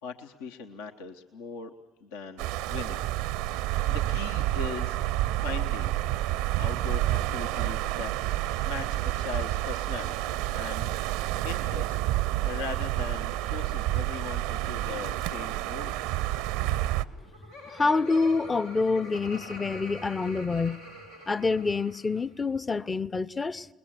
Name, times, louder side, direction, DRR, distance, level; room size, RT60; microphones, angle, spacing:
voice 1, 0.0-1.7 2.0-6.0 6.6-12.0 12.4-16.0, left 5 dB, 70° left, 1.1 m, -40 dB
sound 1, 2.4-17.0, right 15 dB, 65° right, 0.7 m, -29 dB
Laughter, 17.0-22.3, left 1 dB, 85° left, 2.5 m, -44 dB
voice 2, 17.7-20.8 21.3-23.7, left 4 dB, 25° left, 0.7 m, -27 dB
29.0 x 21.0 x 6.2 m
figure-of-eight pair, 55°, 0 cm